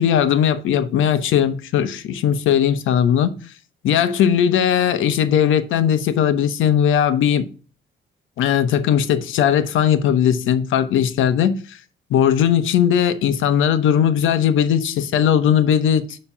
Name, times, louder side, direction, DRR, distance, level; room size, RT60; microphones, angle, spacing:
voice 1, 0.0-3.3 3.8-7.5 8.4-11.8 12.1-16.2, left 9 dB, 80° left, 1.0 m, -18 dB
9.9 x 3.3 x 6.0 m
cardioid pair, 90°, 20 cm